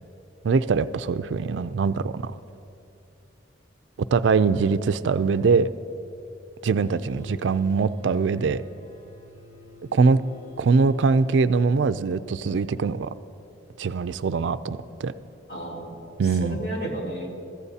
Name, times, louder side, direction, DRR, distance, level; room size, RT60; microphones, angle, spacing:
voice 1, 0.4-2.4 4.1-5.7 6.6-8.6 9.9-10.2 10.6-13.1 13.8-15.1 16.2-16.6, right 4 dB, 85° right, 13 dB, 0.4 m, -22 dB
sound 1, 6.8-11.8, equal, 40° left, 2.1 m, -48 dB
voice 2, 15.5-15.9 16.2-17.3, right 1 dB, 60° left, -3 dB, 3.0 m, -33 dB
22.5 x 14.5 x 2.8 m, 2.8 s
head